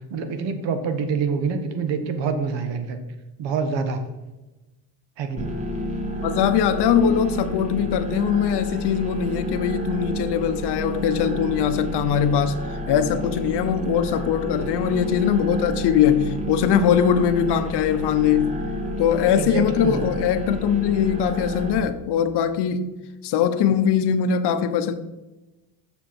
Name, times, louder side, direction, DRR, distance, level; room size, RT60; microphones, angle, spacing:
voice 1, 0.1-3.0 3.4-4.0 5.2-5.5 19.4-20.0, right 5 dB, 80° right, 8 dB, 1.4 m, -26 dB
sound 1, 5.4-21.8, right 1 dB, 15° right, 1.9 m, -30 dB
voice 2, 6.2-12.6 12.9-18.6 19.0-23.0 23.2-24.9, left 8 dB, 65° left, 11 dB, 0.9 m, -21 dB
7.3 x 6.8 x 6.0 m, 1.1 s
cardioid pair, 120°, 43 cm